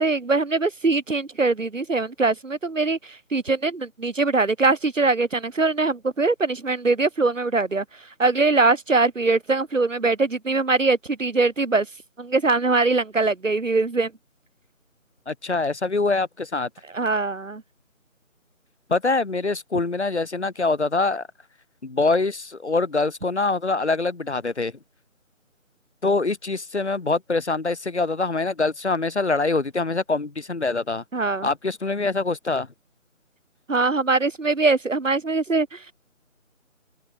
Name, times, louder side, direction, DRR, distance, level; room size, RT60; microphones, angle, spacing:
voice 1, 0.0-7.8 8.2-11.9 12.2-14.1 16.9-17.6 31.1-31.5 33.7-35.8, right 3 dB, 65° right, 1.8 m, -22 dB
voice 2, 15.3-16.7 18.9-21.3 21.8-24.7 26.0-31.0 31.4-32.7, left 3 dB, 55° left, 1.9 m, -24 dB
open air
figure-of-eight pair, 160°, 41 cm